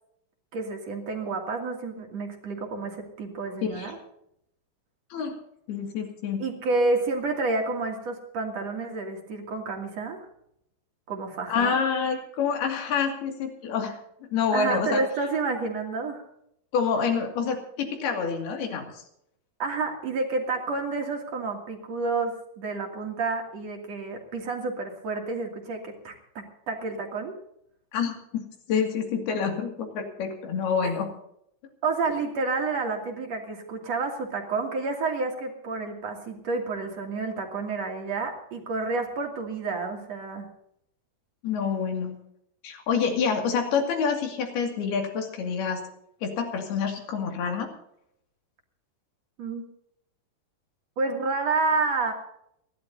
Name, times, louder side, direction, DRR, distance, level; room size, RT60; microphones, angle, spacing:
voice 1, 0.5-4.0 6.4-10.3 11.1-11.8 14.5-16.2 19.6-27.3 30.8-30.9 31.8-40.5 49.4-49.6 51.0-52.1, right 3 dB, 45° right, 2 dB, 3.4 m, -29 dB
voice 2, 3.6-3.9 5.1-5.3 5.7-6.4 11.5-14.0 14.3-15.0 16.7-19.0 27.9-31.1 41.4-42.2 42.6-45.8 46.2-47.7, left 6 dB, 75° left, 3 dB, 4.3 m, -27 dB
29.5 x 12.0 x 2.7 m, 0.74 s
omnidirectional pair, 4.6 m